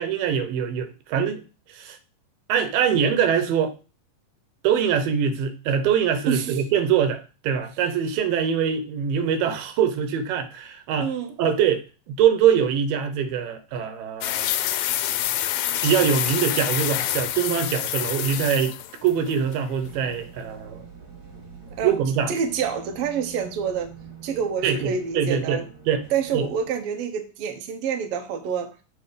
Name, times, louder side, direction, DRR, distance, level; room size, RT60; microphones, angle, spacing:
voice 1, 0.0-1.4 1.7-2.0 2.5-3.8 4.6-11.1 11.4-14.5 15.8-18.7 19.0-20.8 21.8-22.3 24.6-26.0 26.3-26.5, right 8 dB, 90° right, 2.5 m, -23 dB
voice 2, 6.3-6.6 11.0-11.3 21.8-22.0 22.3-23.9 24.2-25.6 26.1-28.7, right 7 dB, 70° right, 1.4 m, -27 dB
sound 1, 14.2-19.6, left 12 dB, 85° left, 1.6 m, -27 dB
sound 2, 19.8-26.8, right 5 dB, 40° right, 1.5 m, -45 dB
8.1 x 2.7 x 5.0 m
omnidirectional pair, 3.8 m